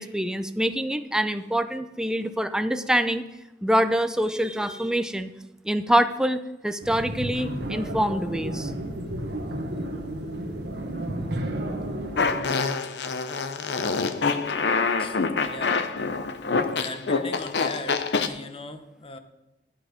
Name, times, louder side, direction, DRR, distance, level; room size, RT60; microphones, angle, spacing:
voice 1, 0.0-3.2 3.6-5.3 5.6-8.7 14.3-15.1, equal, 5° right, 10 dB, 0.5 m, -25 dB
sound 1, 6.8-12.4, right 1 dB, 70° right, 1.5 m, -32 dB
Fart, 12.2-18.3, left 4 dB, 70° left, 0.7 m, -26 dB
voice 2, 15.0-15.8 16.7-19.2, left 2 dB, 30° left, 9 dB, 0.9 m, -39 dB
11.5 x 8.9 x 5.0 m, 0.97 s
head